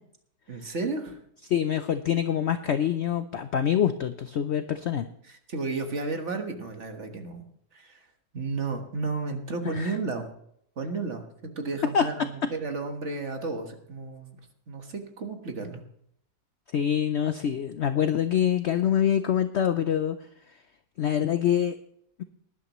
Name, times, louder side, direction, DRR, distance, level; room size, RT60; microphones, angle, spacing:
voice 1, 0.5-1.2 5.3-7.4 7.7-8.0 8.3-10.3 10.8-15.8, right 3 dB, 45° right, 4 dB, 1.7 m, -33 dB
voice 2, 1.5-5.1 9.6-10.0 11.9-12.0 16.7-20.2 21.0-21.7, left 9 dB, 65° left, 10 dB, 0.7 m, -25 dB
19.0 x 11.0 x 3.1 m, 0.70 s
omnidirectional pair, 1.7 m